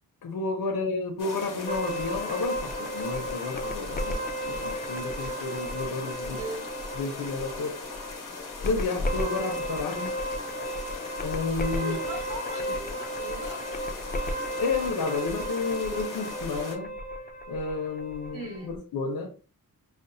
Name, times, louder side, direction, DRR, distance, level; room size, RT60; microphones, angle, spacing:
voice 1, 0.2-6.4 6.9-7.8 8.6-10.2 11.2-12.0 14.6-16.9 17.5-19.3, left 3 dB, 85° left, 0.7 m, -31 dB
sound 1, 1.2-16.7, left 4 dB, 60° left, 1.1 m, -40 dB
sound 2, 1.7-18.8, equal, 25° left, 0.4 m, -34 dB
voice 2, 6.2-6.7 11.8-13.7 18.3-18.7, right 1 dB, 75° right, 1.3 m, -38 dB
5.1 x 2.1 x 2.6 m
wide cardioid pair, 115°, 35 cm